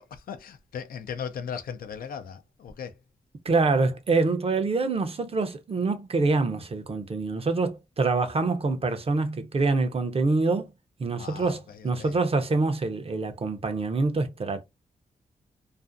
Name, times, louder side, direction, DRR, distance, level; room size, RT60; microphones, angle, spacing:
voice 1, 0.0-3.0 11.2-12.2, left 7 dB, 80° left, 0.5 m, -38 dB
voice 2, 3.4-10.7 11.0-14.6, right 3 dB, 40° right, 0.6 m, -25 dB
2.5 x 2.4 x 2.5 m
cardioid pair, 55°, 15 cm